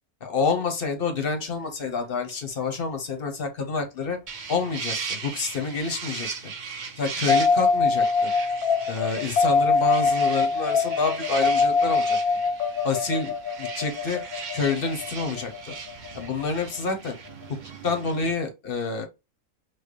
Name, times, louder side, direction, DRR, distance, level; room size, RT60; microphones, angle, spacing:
voice 1, 0.2-4.2 4.5-6.3 7.0-8.3 8.9-12.2 12.8-14.2 14.5-15.7 16.1-17.2 17.8-19.1, left 4 dB, 45° left, 0.9 m, -28 dB
sound 1, 4.3-18.3, right 5 dB, 50° right, 0.6 m, -38 dB
sound 2, 7.3-17.4, left 4 dB, 80° left, 1.3 m, -24 dB
6.1 x 2.2 x 3.2 m
omnidirectional pair, 1.6 m